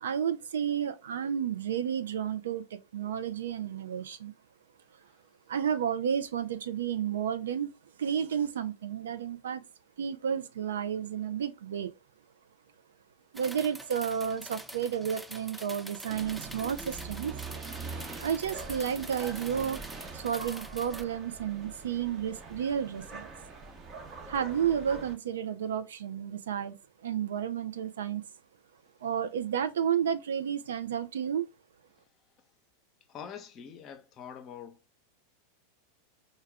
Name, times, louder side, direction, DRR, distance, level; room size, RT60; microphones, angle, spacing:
voice 1, 0.0-2.6 2.9-4.3 5.5-7.7 8.0-9.6 10.0-11.9 13.3-17.3 18.2-19.8 20.1-23.3 24.3-26.7 27.0-28.2 29.0-31.4, right 8 dB, 70° right, 0.4 m, -31 dB
sound 1, 13.3-21.0, right 1 dB, 5° right, 0.4 m, -45 dB
sound 2, 16.1-25.1, right 4 dB, 30° right, 0.8 m, -43 dB
voice 2, 33.1-34.8, left 8 dB, 35° left, 0.7 m, -44 dB
4.5 x 2.2 x 3.3 m
figure-of-eight pair, 90°, 0 cm